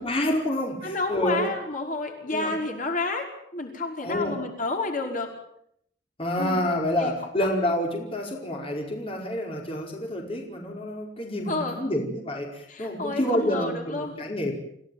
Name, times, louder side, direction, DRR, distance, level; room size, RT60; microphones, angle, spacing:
voice 1, 0.0-1.5 2.3-2.6 4.0-4.4 6.2-14.5, left 1 dB, 35° left, 1 dB, 5.1 m, -28 dB
voice 2, 0.8-3.3 3.5-5.3 6.4-6.6 7.0-7.1 7.4-7.6 11.5-11.8 12.7-14.1, left 3 dB, 50° left, 2 dB, 5.4 m, -30 dB
29.0 x 17.5 x 9.4 m, 0.73 s
head